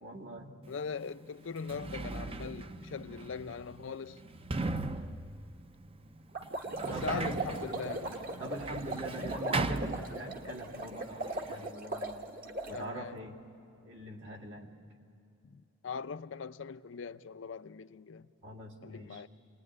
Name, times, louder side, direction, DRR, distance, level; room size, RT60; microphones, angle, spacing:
voice 1, 0.0-0.6 6.9-7.5 8.4-12.3 12.7-13.4 13.8-14.8 18.4-19.2, right 1 dB, 70° right, 2.3 m, -44 dB
voice 2, 0.7-4.2 6.8-8.1 12.7-13.2 15.4-18.2 18.8-19.3, left 5 dB, 70° left, 0.5 m, -41 dB
Sliding door, 0.7-0.8 1.5-10.6 10.9-11.7, right 3 dB, 30° right, 0.6 m, -38 dB
sound 1, 6.3-12.8, right 2 dB, 45° right, 1.4 m, -38 dB
26.5 x 20.0 x 9.6 m
head